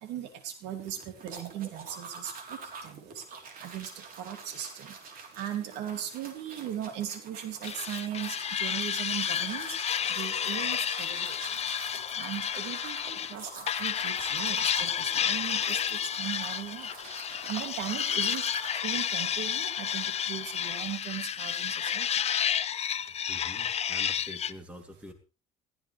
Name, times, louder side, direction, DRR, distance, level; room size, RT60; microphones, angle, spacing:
voice 1, 0.0-3.2 3.6-3.9 4.2-4.9 5.4-9.7 10.1-11.4 12.2-16.9 17.5-18.4 18.8-22.1, right 10 dB, 90° right, 7 dB, 2.7 m, -38 dB
sound 1, 0.8-18.8, right 5 dB, 55° right, 3.7 m, -45 dB
sound 2, 7.6-13.3 13.7-24.5, left 8 dB, 40° left, 0.6 m, -31 dB
sound 3, 9.4-21.0, left 10 dB, 75° left, 1.8 m, -48 dB
voice 2, 23.3-25.1, equal, 5° right, 6 dB, 3.0 m, -46 dB
19.5 x 14.5 x 3.3 m, 0.31 s
cardioid pair, 110°, 17 cm